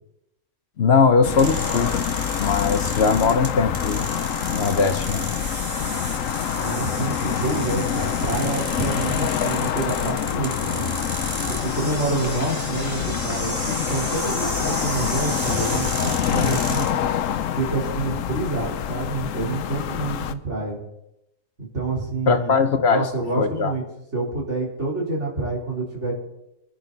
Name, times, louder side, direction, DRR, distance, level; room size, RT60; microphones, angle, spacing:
voice 1, 0.8-1.9 2.4-4.1 4.5-5.3 22.3-23.1 23.4-23.7, left 5 dB, 60° left, 9 dB, 1.1 m, -20 dB
sound 1, 1.2-20.3, left 9 dB, 85° left, 1.1 m, -26 dB
sound 2, 1.4-16.9, right 2 dB, 45° right, 2.4 m, -33 dB
voice 2, 6.6-11.0 11.5-16.9 17.6-20.8 21.6-23.8 24.1-26.1, right 3 dB, 65° right, -3 dB, 4.2 m, -28 dB
23.5 x 10.5 x 4.0 m, 0.84 s
omnidirectional pair, 1.3 m